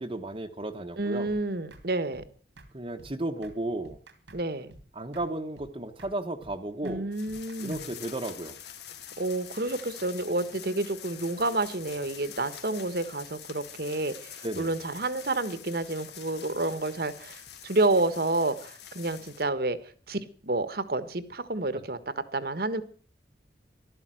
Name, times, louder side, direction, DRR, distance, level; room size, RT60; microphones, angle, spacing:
voice 1, 0.0-1.3 2.7-4.0 4.9-7.1 7.6-8.6 14.4-14.7, right 1 dB, 30° right, 1.1 m, -34 dB
voice 2, 1.0-2.2 4.3-4.7 6.8-7.8 9.2-22.8, right 2 dB, 60° right, 1.4 m, -29 dB
sound 1, 1.3-1.4 1.7-1.9 2.1-2.3 2.6-2.7 3.0-3.1 3.4-3.6 3.8-4.4 4.7-4.9 5.1-5.3 5.6-5.7 6.0-6.1 6.4-6.6 6.8-7.0 7.3-7.9, right 1 dB, 85° right, 2.7 m, -50 dB
sound 2, 7.1-19.5, left 9 dB, 70° left, 1.8 m, -46 dB
14.0 x 12.5 x 7.7 m
head